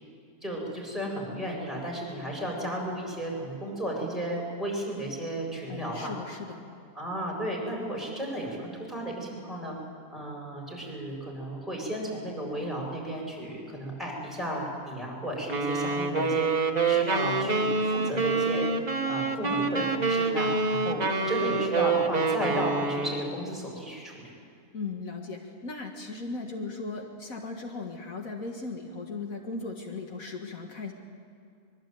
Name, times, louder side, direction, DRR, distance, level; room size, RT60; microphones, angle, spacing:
voice 1, 0.4-6.1 6.9-9.8 10.1-16.5 16.9-18.7 19.1-24.3, right 1 dB, ahead, -2 dB, 7.9 m, -34 dB
voice 2, 5.7-6.7 24.7-30.9, left 3 dB, 70° left, 2 dB, 2.3 m, -37 dB
sound 1, 15.5-23.4, right 4 dB, 30° right, 1.5 m, -27 dB
24.0 x 23.5 x 9.3 m, 2.4 s
omnidirectional pair, 1.5 m